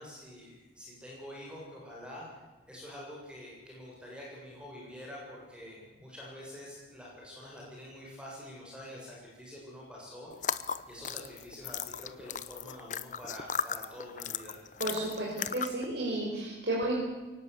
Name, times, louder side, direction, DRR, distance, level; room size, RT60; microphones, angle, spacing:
voice 1, 0.0-2.3 2.7-10.6 10.9-14.6, left 1 dB, 5° right, -4 dB, 7.1 m, -46 dB
sound 1, 10.3-15.9, left 7 dB, 45° left, 0.8 m, -36 dB
voice 2, 14.8-17.0, right 1 dB, 60° right, -4 dB, 5.6 m, -32 dB
23.0 x 19.0 x 8.4 m, 1.2 s
head